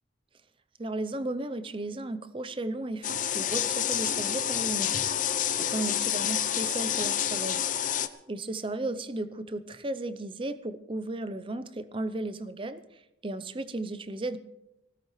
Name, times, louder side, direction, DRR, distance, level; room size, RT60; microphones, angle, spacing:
voice 1, 0.8-4.9 5.5-7.6 8.3-12.8 13.2-14.4, right 2 dB, 30° right, 12 dB, 0.6 m, -34 dB
sound 1, 3.0-8.1, left 10 dB, 45° left, 0.6 m, -28 dB
19.5 x 16.0 x 3.2 m, 0.91 s
head